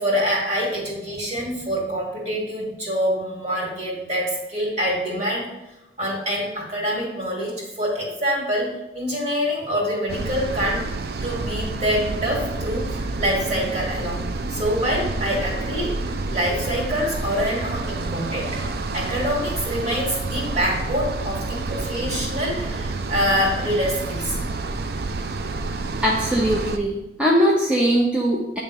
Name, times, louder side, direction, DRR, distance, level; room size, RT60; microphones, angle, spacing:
voice 1, 0.0-5.5 6.0-10.9 11.2-14.2 14.5-18.6 18.9-24.4, equal, 40° right, -4 dB, 2.3 m, -25 dB
sound 1, 10.1-26.8, right 3 dB, 60° right, 0.4 m, -29 dB
voice 2, 26.0-28.6, equal, 5° right, -4 dB, 0.7 m, -20 dB
8.4 x 3.3 x 5.3 m, 0.96 s
head